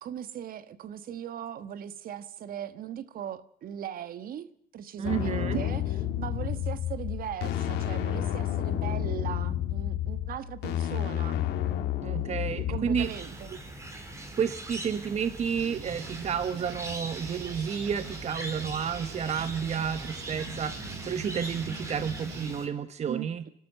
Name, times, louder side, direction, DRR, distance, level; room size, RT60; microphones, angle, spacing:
voice 1, 0.0-11.5 12.1-13.6 23.0-23.5, right 10 dB, 60° right, 1.3 m, -39 dB
sound 1, 5.0-13.1, left 11 dB, 80° left, 2.4 m, -30 dB
voice 2, 5.0-5.6 12.0-13.1 14.4-23.4, right 7 dB, 40° right, 1.0 m, -31 dB
sound 2, 13.0-22.7, right 1 dB, 15° right, 3.7 m, -41 dB
sound 3, 15.6-22.4, right 5 dB, 85° right, 6.7 m, -43 dB
26.0 x 13.0 x 8.1 m
cardioid pair, 110°, 17 cm